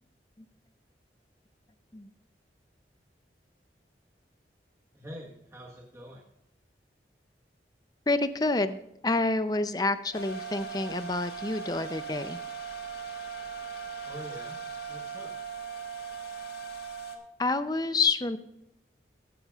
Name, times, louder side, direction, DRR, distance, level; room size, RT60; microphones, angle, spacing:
voice 1, 4.9-6.2 14.0-14.6 14.9-15.3, equal, 15° right, -2 dB, 1.4 m, -45 dB
voice 2, 8.1-12.4 17.4-18.4, left 3 dB, 20° left, 11 dB, 0.5 m, -28 dB
sound 1, 10.1-17.2, right 5 dB, 65° left, 1.6 m, -39 dB
15.5 x 10.5 x 2.4 m, 0.79 s
head